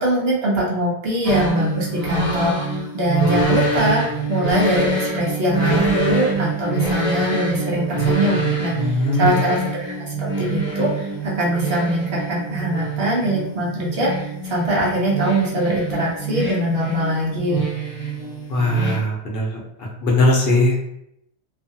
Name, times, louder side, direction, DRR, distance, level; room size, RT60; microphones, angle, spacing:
voice 1, 0.0-4.0 4.3-9.9 10.2-17.7, equal, 65° right, -4 dB, 1.0 m, -22 dB
sound 1, 1.2-19.0, right 3 dB, 40° left, 0.9 m, -25 dB
voice 2, 8.8-9.4 18.5-19.6 20.0-20.8, left 1 dB, 65° left, -2 dB, 0.9 m, -19 dB
2.6 x 2.5 x 2.6 m, 0.77 s
omnidirectional pair, 1.1 m